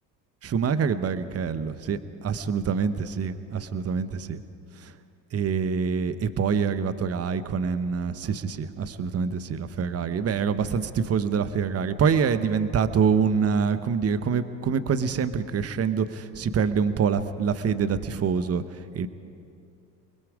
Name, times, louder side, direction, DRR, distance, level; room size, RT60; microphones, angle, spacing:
voice 1, 0.4-2.0 2.2-4.4 5.3-18.6 18.9-19.1, right 6 dB, 30° right, 12 dB, 1.1 m, -25 dB
28.5 x 21.0 x 5.0 m, 2.6 s
hypercardioid pair, 70°, 50 cm